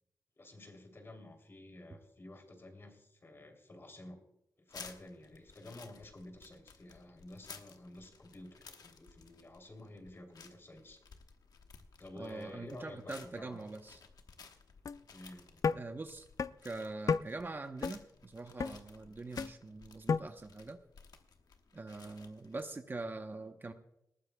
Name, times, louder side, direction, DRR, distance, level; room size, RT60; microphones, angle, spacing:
voice 1, 0.4-4.2 4.7-11.0 12.0-13.7 15.1-15.6, left 1 dB, 40° left, 4 dB, 3.0 m, -51 dB
sound 1, 4.7-22.6, left 5 dB, 90° left, 1.1 m, -56 dB
voice 2, 12.2-14.0 15.7-16.3 16.6-20.8 21.7-23.7, right 3 dB, 35° right, 6 dB, 0.8 m, -43 dB
sound 2, 14.9-15.0 15.6-15.8 16.4-16.5 17.1-17.2 17.8-18.0 18.6-18.7 19.4-19.5 20.1-20.2, left 5 dB, 60° left, 0.4 m, -30 dB
19.5 x 14.5 x 2.3 m, 0.83 s
wide cardioid pair, 110°, 6 cm